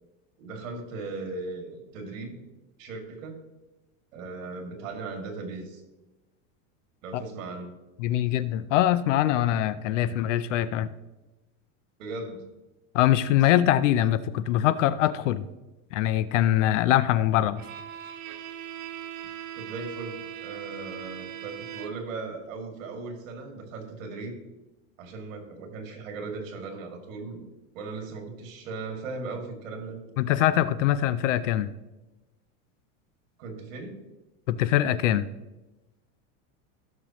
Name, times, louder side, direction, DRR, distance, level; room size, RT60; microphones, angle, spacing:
voice 1, 0.4-2.4 2.8-3.4 4.1-5.8 7.0-7.8 12.0-12.4 19.6-24.4 25.0-27.4 27.7-30.0 33.4-34.0, right 3 dB, 70° right, 3 dB, 2.5 m, -38 dB
voice 2, 8.0-10.9 12.9-15.4 15.9-17.6 30.2-31.7 34.5-35.3, left 12 dB, 65° left, 15 dB, 0.6 m, -23 dB
Bowed string instrument, 17.6-22.2, right 10 dB, 90° right, 1.3 m, -40 dB
16.0 x 6.8 x 3.0 m, 1.1 s
supercardioid pair, 180°, 40 cm